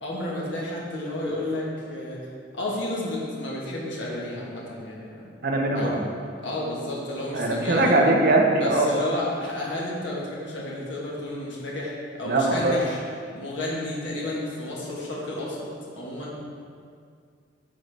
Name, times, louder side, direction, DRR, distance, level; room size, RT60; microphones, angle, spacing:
voice 1, 0.0-2.2 2.5-5.2 5.7-6.0 6.4-7.9 8.6-11.9 12.2-13.0 13.3-15.7 15.9-16.4, left 1 dB, 85° left, -4 dB, 1.3 m, -31 dB
voice 2, 5.4-6.0 7.3-8.9 12.3-12.7, right 2 dB, 55° right, 1 dB, 0.8 m, -21 dB
10.0 x 4.1 x 3.4 m, 2.2 s
head